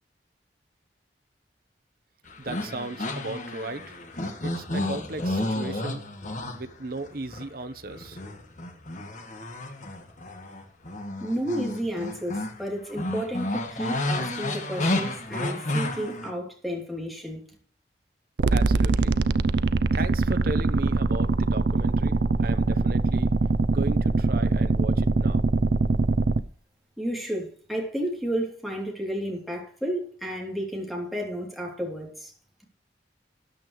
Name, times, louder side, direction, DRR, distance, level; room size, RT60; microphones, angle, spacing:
sound 1, 2.3-7.5 7.9-12.6 12.9-16.3, left 1 dB, 45° left, 1.7 m, -31 dB
voice 1, 2.4-4.0 4.4-6.0 6.5-8.2 18.5-19.2 19.9-23.3 23.7-25.4, right 2 dB, 55° right, 1.1 m, -36 dB
voice 2, 11.2-17.4 27.0-32.3, equal, ahead, 3.1 m, -32 dB
sound 2, 18.4-26.4, right 3 dB, 80° right, 0.6 m, -23 dB
13.0 x 10.5 x 3.2 m
head